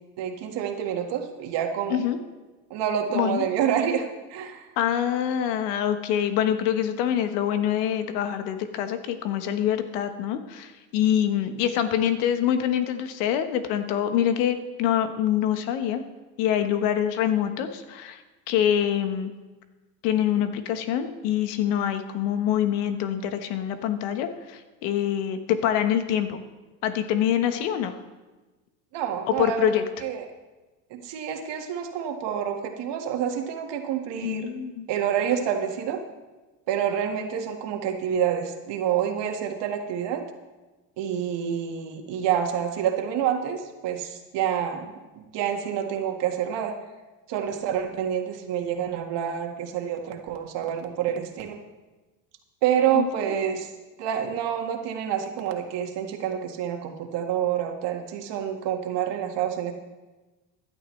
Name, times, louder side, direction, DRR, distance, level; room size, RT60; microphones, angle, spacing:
voice 1, 0.2-2.0 2.7-4.7 28.9-30.3 30.9-34.5 34.9-36.0 36.7-40.2 41.0-46.7 47.3-51.6 52.6-53.7 54.0-59.7, right 9 dB, 60° right, 4 dB, 1.9 m, -28 dB
voice 2, 3.1-3.5 4.8-16.0 16.4-19.3 20.0-26.4 26.8-28.0 29.3-29.8 34.2-34.9 52.9-53.3, left 10 dB, 70° left, 8 dB, 1.4 m, -25 dB
15.5 x 11.0 x 3.3 m, 1.2 s
supercardioid pair, 95°, 49 cm